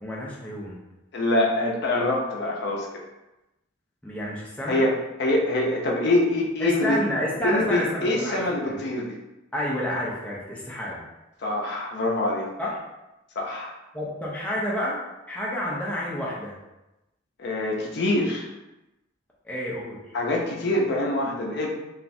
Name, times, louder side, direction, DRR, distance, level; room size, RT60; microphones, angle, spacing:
voice 1, 0.0-0.8 4.0-4.8 6.6-8.8 9.5-11.0 12.6-12.7 13.9-15.0 15.3-16.6 19.4-20.0, equal, 5° left, -6 dB, 0.5 m, -29 dB
voice 2, 1.1-2.9 4.7-4.9 5.2-7.0 7.4-9.2 11.4-12.5 13.4-13.7 17.4-18.5 20.1-21.7, left 1 dB, 55° left, -1 dB, 0.5 m, -24 dB
3.0 x 2.3 x 2.6 m, 0.97 s
head